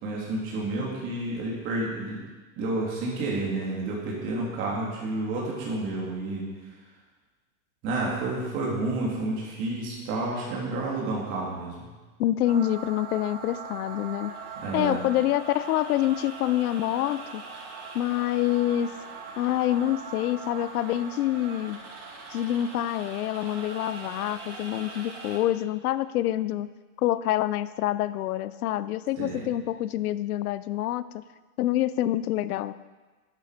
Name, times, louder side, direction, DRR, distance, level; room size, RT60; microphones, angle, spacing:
voice 1, 0.0-2.2 2.6-6.5 7.8-11.9 14.6-15.0 29.2-29.5, right 2 dB, 25° right, -4 dB, 3.3 m, -30 dB
voice 2, 12.2-14.3 14.7-17.4 17.9-18.9 19.4-21.8 22.3-26.7 27.0-31.2 31.6-32.7, left 13 dB, 85° left, 15 dB, 0.7 m, -26 dB
sound 1, 12.4-25.4, right 4 dB, 55° right, 4.9 m, -41 dB
12.0 x 11.0 x 5.1 m, 1.3 s
supercardioid pair, 180°, 43 cm